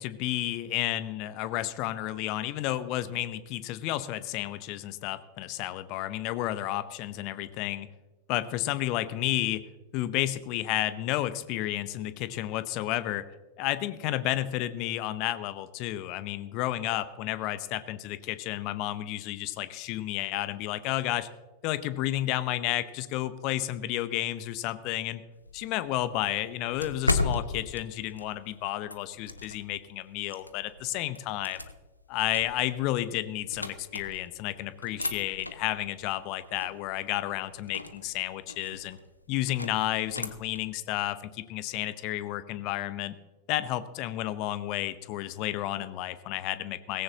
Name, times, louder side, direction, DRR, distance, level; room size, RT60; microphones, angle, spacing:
voice 1, 0.0-7.9 8.3-9.6 9.9-13.2 13.6-21.3 21.6-25.2 25.5-31.6 32.1-39.0 39.3-43.1 43.5-47.0, left 14 dB, 40° left, 14 dB, 0.8 m, -31 dB
sound 1, 25.3-29.8 30.3-34.4 34.8-40.7, left 2 dB, 85° left, 0.8 m, -36 dB
18.0 x 16.0 x 2.9 m, 1.2 s
figure-of-eight pair, 90°, 0 cm